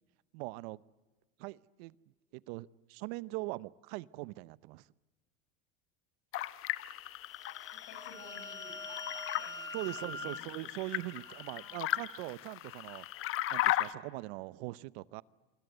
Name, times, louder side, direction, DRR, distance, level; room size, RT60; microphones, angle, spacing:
voice 1, 0.3-0.8 1.4-1.9 2.3-4.9 9.7-13.0 13.5-15.2, right 21 dB, 75° right, 20 dB, 0.8 m, -41 dB
sound 1, 6.3-13.9, left 14 dB, 45° left, 1.0 m, -37 dB
sound 2, 7.4-11.9, left 2 dB, 10° left, 1.5 m, -45 dB
voice 2, 7.7-10.5 11.5-11.9, left 5 dB, 65° left, 7 dB, 7.8 m, -55 dB
28.0 x 25.0 x 8.0 m, 1.2 s
supercardioid pair, 130°, 31 cm